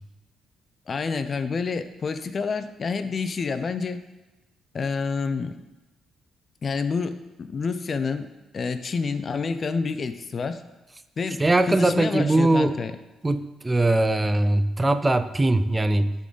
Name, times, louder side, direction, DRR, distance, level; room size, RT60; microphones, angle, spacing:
voice 1, 0.9-4.0 4.7-5.6 6.6-8.3 8.5-10.6 11.2-13.0, left 4 dB, 45° left, 10 dB, 0.5 m, -28 dB
voice 2, 11.4-12.8 13.2-16.1, right 2 dB, 20° right, 11 dB, 0.3 m, -21 dB
11.0 x 3.9 x 3.8 m, 1.1 s
cardioid pair, 90°, 0 cm